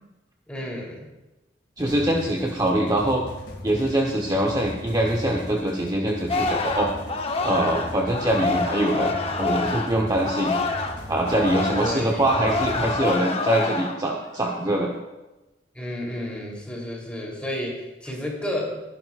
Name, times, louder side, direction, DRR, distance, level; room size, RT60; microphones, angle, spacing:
voice 1, 0.5-1.1 11.8-12.2 15.7-18.8, left 1 dB, 5° left, -3 dB, 3.4 m, -31 dB
sound 1, 1.8-13.0, left 1 dB, 70° left, 2.4 m, -38 dB
voice 2, 1.8-3.2 3.6-6.9 7.4-10.6 11.1-14.9, right 1 dB, 20° right, 0 dB, 1.0 m, -23 dB
Singing, 6.3-11.0 11.2-14.0 14.4-14.8, left 3 dB, 35° left, 1.0 m, -27 dB
21.0 x 11.0 x 2.5 m, 1.0 s
head